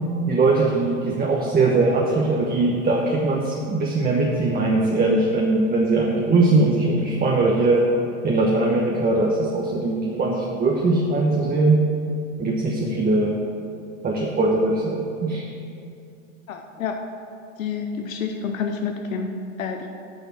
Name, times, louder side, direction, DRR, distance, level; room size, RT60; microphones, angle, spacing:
voice 1, 0.3-7.9 8.2-11.8 12.4-13.4 14.0-15.4, right 2 dB, 25° right, -1 dB, 1.1 m, -20 dB
voice 2, 16.5-17.0 17.6-19.9, left 5 dB, 85° left, 4 dB, 0.8 m, -29 dB
9.4 x 5.6 x 7.3 m, 2.5 s
hypercardioid pair, 95°, 39 cm